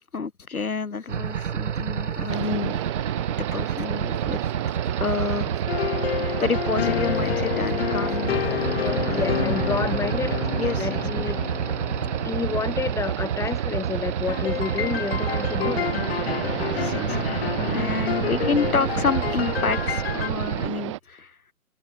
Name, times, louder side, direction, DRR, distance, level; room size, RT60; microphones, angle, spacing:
voice 1, 0.1-2.8 3.3-4.5 4.8-8.4 9.1-9.7 10.6-11.0 16.7-21.4, left 5 dB, 70° left, 5.7 m, -29 dB
sound 1, 1.1-20.7, right 8 dB, 50° right, 5.8 m, -29 dB
sound 2, 2.3-21.0, right 16 dB, 20° right, 1.0 m, -33 dB
sound 3, 5.7-13.4 14.3-20.3, left 10 dB, 40° left, 1.6 m, -29 dB
voice 2, 8.4-11.4 12.2-15.9, left 5 dB, 5° left, 4.8 m, -30 dB
figure-of-eight pair, 140°, 44 cm